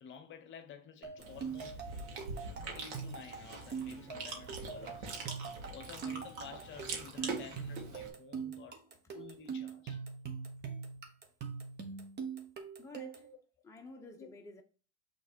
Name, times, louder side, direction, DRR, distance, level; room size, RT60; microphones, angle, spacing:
voice 1, 0.0-1.8 2.7-5.1 5.7-8.8 9.1-10.0 13.2-13.3 14.2-14.3, left 7 dB, 35° left, 1.0 m, -52 dB
sound 1, 1.0-13.3, right 6 dB, 30° right, 1.5 m, -43 dB
Chewing mastication, 1.2-8.1, right 3 dB, 80° right, 1.9 m, -44 dB
voice 2, 12.8-13.3 13.6-14.6, left 2 dB, 10° left, 1.0 m, -51 dB
6.1 x 3.5 x 4.5 m
supercardioid pair, 110°, 33 cm